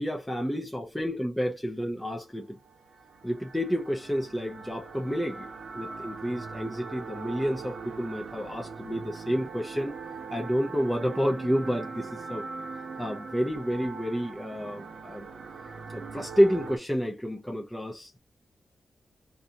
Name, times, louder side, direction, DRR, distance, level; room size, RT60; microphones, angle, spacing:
voice 1, 0.0-2.6 3.2-5.5 5.7-9.9 10.3-12.5 13.0-15.3 15.9-18.2, equal, 5° left, 0.4 m, -29 dB
sound 1, 2.6-16.8, right 4 dB, 60° right, 0.7 m, -41 dB
2.5 x 2.3 x 2.7 m
wide cardioid pair, 175°, 0 cm